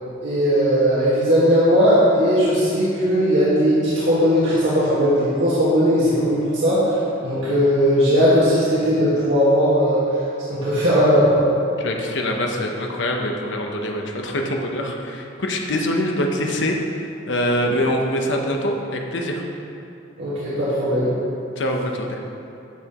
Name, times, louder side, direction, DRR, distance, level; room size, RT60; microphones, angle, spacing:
voice 1, 0.2-6.9 7.2-10.0 10.5-11.4 17.6-17.7 20.2-21.1, equal, 85° right, -10 dB, 1.8 m, -18 dB
voice 2, 11.8-16.8 17.3-19.4 21.6-22.2, left 1 dB, 75° left, 1 dB, 0.8 m, -24 dB
10.5 x 6.7 x 3.0 m, 2.7 s
head